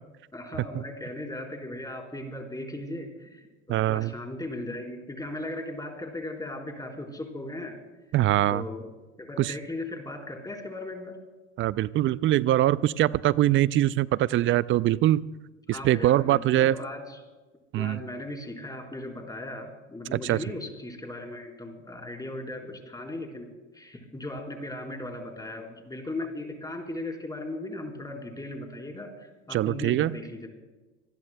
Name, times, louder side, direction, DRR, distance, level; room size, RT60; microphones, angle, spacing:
voice 1, 0.3-7.8 8.5-8.9 9.2-11.2 15.7-17.2 17.7-29.1 29.5-30.5, left 1 dB, 10° left, 1 dB, 4.2 m, -37 dB
voice 2, 3.7-4.1 8.1-8.7 9.4-9.5 11.6-15.3 15.7-16.7 17.7-18.0 20.1-20.4 29.5-30.2, right 14 dB, 35° right, 20 dB, 0.4 m, -23 dB
26.0 x 20.5 x 2.2 m, 1.2 s
hypercardioid pair, 80°, 35 cm